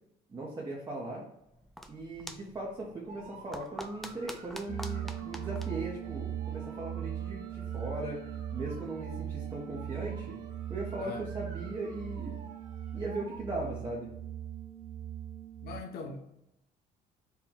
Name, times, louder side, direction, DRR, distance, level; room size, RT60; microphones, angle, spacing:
voice 1, 0.3-1.2 1.9-8.2 8.5-10.4 10.7-12.4 12.9-14.1, right 2 dB, 25° right, 0.8 m, -38 dB
sound 1, 1.4-6.8, equal, ahead, 0.3 m, -48 dB
sound 2, 3.1-13.4, right 4 dB, 45° right, 0.9 m, -52 dB
sound 3, 4.7-15.8, right 10 dB, 70° right, 0.4 m, -39 dB
voice 2, 15.6-16.3, left 3 dB, 70° left, 0.7 m, -41 dB
4.4 x 2.2 x 3.6 m
cardioid pair, 110°, 17 cm